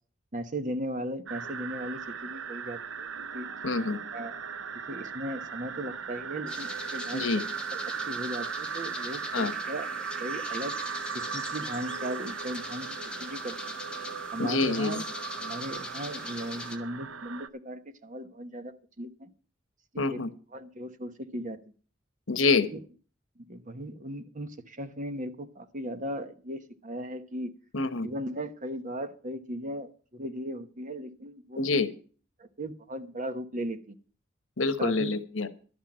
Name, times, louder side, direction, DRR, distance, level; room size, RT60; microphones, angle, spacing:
voice 1, 0.3-3.1 3.3-3.5 4.1-4.3 4.9-7.2 7.9-10.8 11.1-13.8 14.3-15.0 15.4-19.3 19.9-20.2 20.5-21.6 22.7-22.8 23.4-27.5 28.0-31.8 32.4-34.0 34.8-35.1, right 1 dB, 40° right, 9 dB, 1.1 m, -37 dB
sound 1, 1.3-17.5, right 6 dB, 85° right, 0.7 m, -37 dB
voice 2, 3.6-4.0 7.1-7.4 9.3-9.5 14.4-15.0 20.0-20.3 22.3-22.7 27.7-28.1 31.6-31.9 34.6-35.5, left 3 dB, 80° left, 11 dB, 1.1 m, -26 dB
sound 2, 6.5-16.8, left 2 dB, 5° left, 1.3 m, -42 dB
12.5 x 6.0 x 8.7 m, 0.41 s
head